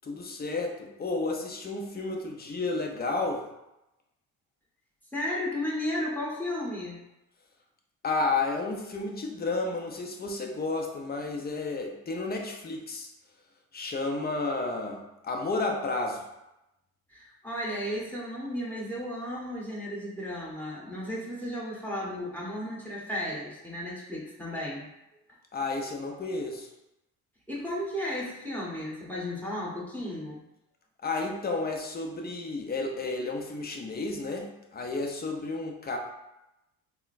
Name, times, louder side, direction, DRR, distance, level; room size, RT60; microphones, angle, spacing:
voice 1, 0.0-3.5 8.0-13.1 13.7-16.2 25.5-26.7 31.0-36.0, left 3 dB, 25° left, 2 dB, 0.6 m, -32 dB
voice 2, 5.1-7.0 17.1-24.9 27.5-30.4, left 1 dB, 5° left, -5 dB, 1.2 m, -34 dB
3.7 x 2.2 x 2.5 m, 0.91 s
hypercardioid pair, 55°, 42 cm